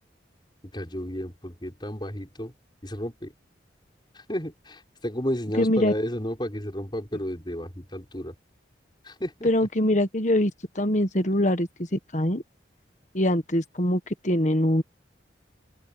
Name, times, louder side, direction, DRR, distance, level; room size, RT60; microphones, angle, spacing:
voice 1, 0.7-2.5 2.8-3.3 4.1-8.3 9.0-9.5, equal, 25° left, 5.8 m, -32 dB
voice 2, 5.6-5.9 9.4-10.5 10.8-11.7 12.1-12.4 13.1-14.8, left 1 dB, 40° left, 1.5 m, -23 dB
open air
head